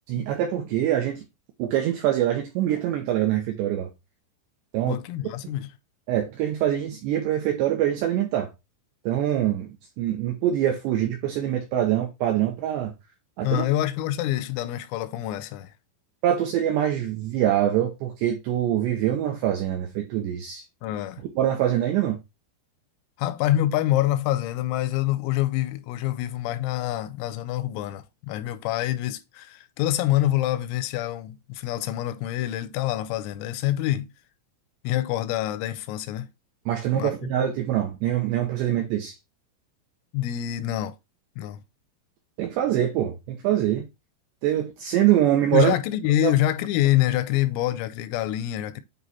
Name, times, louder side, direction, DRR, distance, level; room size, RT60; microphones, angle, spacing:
voice 1, 0.1-1.2 1.6-3.9 4.7-5.0 6.1-8.5 9.1-9.7 10.0-12.9 13.4-13.6 16.2-20.6 21.2-22.2 36.7-39.1 42.4-43.9 44.4-45.8 46.2-46.3, right 11 dB, 75° right, 2.6 m, -24 dB
voice 2, 4.9-5.7 13.4-15.7 20.8-21.2 23.2-34.1 34.8-36.3 36.9-37.3 40.1-41.0 41.4-41.6 45.5-48.8, left 14 dB, 85° left, 3.2 m, -26 dB
9.2 x 3.2 x 4.0 m
omnidirectional pair, 6.0 m